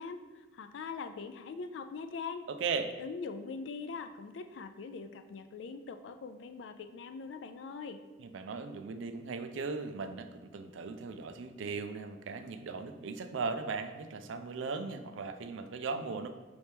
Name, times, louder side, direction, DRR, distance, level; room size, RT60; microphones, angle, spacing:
voice 1, 0.0-2.4 3.0-8.0, left 4 dB, 70° left, 9 dB, 0.3 m, -42 dB
voice 2, 2.5-2.9 8.2-16.3, right 4 dB, 80° right, 9 dB, 0.4 m, -38 dB
5.4 x 2.9 x 3.4 m, 1.3 s
head